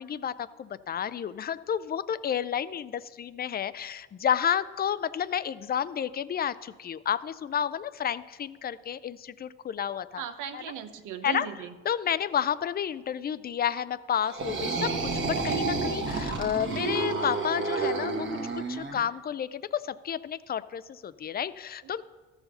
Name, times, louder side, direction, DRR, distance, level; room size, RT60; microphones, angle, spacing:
voice 1, 0.0-10.2 10.5-10.6 11.2-11.5 11.9-18.3 18.5-22.0, left 9 dB, 30° left, 16 dB, 0.4 m, -31 dB
voice 2, 10.1-11.8, right 9 dB, 90° right, 9 dB, 0.8 m, -37 dB
sound 1, 14.2-19.0, right 3 dB, 40° right, 1.3 m, -30 dB
13.5 x 4.8 x 6.6 m, 1.3 s
cardioid pair, 90°, 30 cm